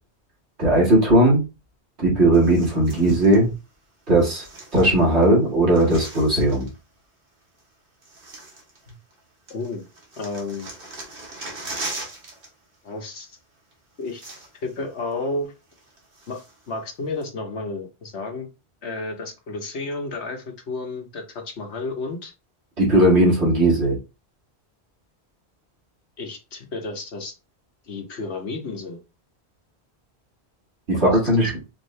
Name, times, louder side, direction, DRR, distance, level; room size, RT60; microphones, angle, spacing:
voice 1, 0.6-1.4 2.0-3.5 4.1-4.4 4.7-6.7 22.8-24.0 31.0-31.5, right 1 dB, 80° right, -4 dB, 2.0 m, -17 dB
sound 1, 2.3-3.4 4.2-5.3 5.5-6.8 7.6-7.7 8.0-9.2 9.5-12.5 12.7-13.0 13.7-13.8 14.0-14.8 15.1-15.2 15.7-16.7 17.2-17.3, right 2 dB, 55° right, 1.4 m, -39 dB
voice 2, 9.5-9.9 10.2-10.7 12.8-13.4 14.0-14.2 14.6-15.5 16.3-16.4 16.7-18.5 18.8-22.3 26.2-27.3 27.9-29.0 30.9-31.3, left 3 dB, 90° left, 3 dB, 1.3 m, -32 dB
4.8 x 2.7 x 3.2 m, 0.28 s
omnidirectional pair, 1.1 m